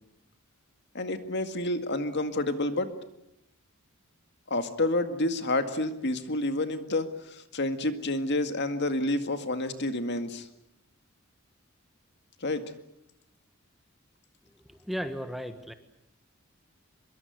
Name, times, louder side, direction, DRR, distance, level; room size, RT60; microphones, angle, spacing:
voice 1, 0.9-2.9 4.5-10.5 12.4-12.6, left 2 dB, 55° left, 8 dB, 2.0 m, -29 dB
voice 2, 14.7-15.7, equal, ahead, 8 dB, 1.3 m, -35 dB
25.0 x 22.5 x 8.1 m, 0.83 s
head